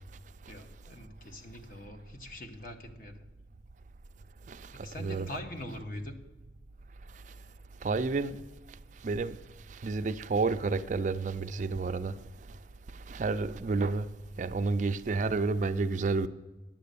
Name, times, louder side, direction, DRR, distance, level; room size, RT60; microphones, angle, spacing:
voice 1, 0.5-3.2 4.7-6.1, left 1 dB, 45° left, 1.2 m, -43 dB
voice 2, 4.5-5.3 7.8-8.4 9.0-9.4 9.8-12.2 13.1-14.1 14.4-16.3, right 3 dB, 40° right, 0.4 m, -30 dB
10.0 x 7.5 x 6.8 m
head